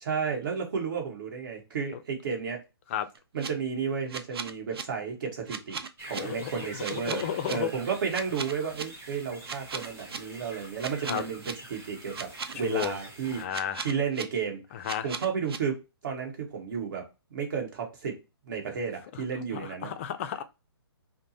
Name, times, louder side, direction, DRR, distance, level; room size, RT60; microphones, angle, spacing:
voice 1, 0.0-2.6 3.3-13.4 13.8-14.6 15.0-17.0 17.3-18.2 18.5-19.9, right 6 dB, 50° right, 1.4 m, -32 dB
sound 1, 3.2-3.5 4.1-4.8 5.5-6.2 6.8-7.5 8.1-8.8 9.4-10.2 10.8-11.5 12.1-12.9 13.5-14.2 14.8-15.6, right 6 dB, 70° right, 0.5 m, -36 dB
sound 2, 6.0-13.4, right 1 dB, 20° right, 1.1 m, -46 dB
voice 2, 6.2-6.5 6.9-7.7 11.1-11.2 12.6-13.0 13.3-13.9 14.7-15.1 19.1-19.2 19.5-20.4, left 10 dB, 30° left, 0.4 m, -32 dB
5.0 x 2.1 x 2.7 m
hypercardioid pair, 145°, 13 cm